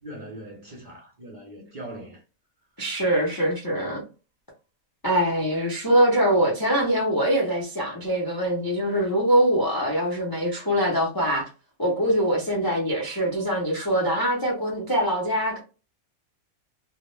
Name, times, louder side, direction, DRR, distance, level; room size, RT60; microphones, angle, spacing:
voice 1, 0.0-2.2, right 1 dB, 50° right, 0.6 m, -40 dB
voice 2, 2.8-4.0 5.0-11.5 11.8-15.6, right 1 dB, 30° left, 0.4 m, -23 dB
2.3 x 2.1 x 3.1 m
omnidirectional pair, 1.4 m